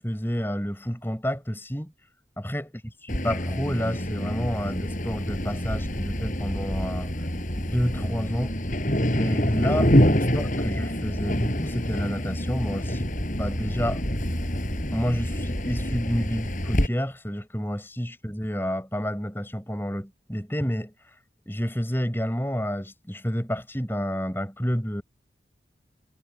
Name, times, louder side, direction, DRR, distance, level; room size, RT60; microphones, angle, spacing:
voice 1, 0.0-1.9 2.4-2.7 3.2-7.1 7.6-8.5 9.1-13.1 13.4-14.0 14.9-20.9 21.4-25.0, equal, 15° left, 6.9 m, -29 dB
sound 1, 3.1-16.9, equal, 45° left, 5.9 m, -26 dB
head